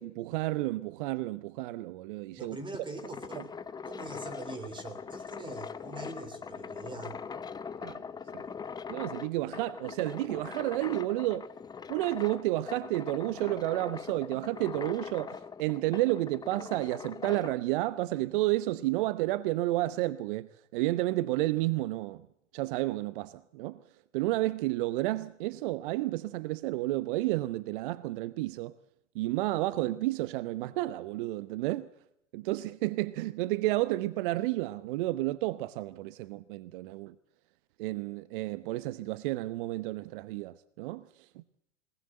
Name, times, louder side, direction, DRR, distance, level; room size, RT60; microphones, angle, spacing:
voice 1, 0.0-2.6 3.4-3.5 7.8-8.0 8.3-8.4 8.9-11.5 11.9-22.3 22.5-23.8 24.1-28.8 29.1-31.9 32.3-37.1 37.8-41.4, right 17 dB, 45° right, 0.9 m, -31 dB
voice 2, 2.4-3.5 3.8-7.2, right 2 dB, 15° right, 3.3 m, -42 dB
sound 1, 2.7-17.6, left 6 dB, 10° left, 0.9 m, -42 dB
27.5 x 19.5 x 7.9 m
figure-of-eight pair, 100°, 36 cm